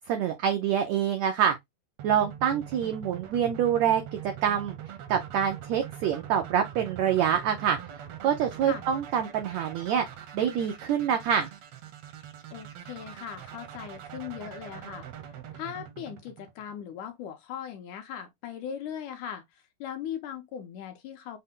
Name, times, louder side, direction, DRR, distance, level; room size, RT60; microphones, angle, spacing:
voice 1, 0.1-1.5 2.0-10.0 10.3-11.5, right 9 dB, 85° right, 1.5 m, -26 dB
sound 1, 2.0-16.9, right 10 dB, 70° right, 1.6 m, -43 dB
voice 2, 12.5-15.1 15.5-21.4, left 9 dB, 75° left, 2.0 m, -39 dB
5.6 x 2.1 x 3.6 m
omnidirectional pair, 3.9 m